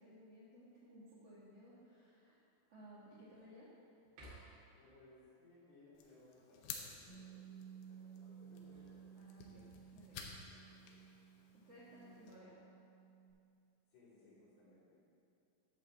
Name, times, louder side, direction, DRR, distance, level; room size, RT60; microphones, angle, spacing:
voice 1, 0.0-2.4 2.7-3.7 9.2-9.7 9.9-10.2 11.5-12.5, equal, 85° right, -10 dB, 1.3 m, -58 dB
sound 1, 1.1-1.5 2.1-2.2 2.7-3.5 4.0-4.8 8.3-9.7 11.0-11.6, right 1 dB, 60° right, 3.7 m, -61 dB
voice 2, 4.7-9.3 10.5-11.1 11.9-12.3 13.9-15.2, left 2 dB, 60° left, -9 dB, 4.2 m, -65 dB
sound 2, 5.9-12.4, left 6 dB, 85° left, 3.4 m, -54 dB
Bass guitar, 7.1-13.3, right 7 dB, 35° right, 2.2 m, -57 dB
11.5 x 4.0 x 7.1 m, 2.6 s
omnidirectional pair, 5.7 m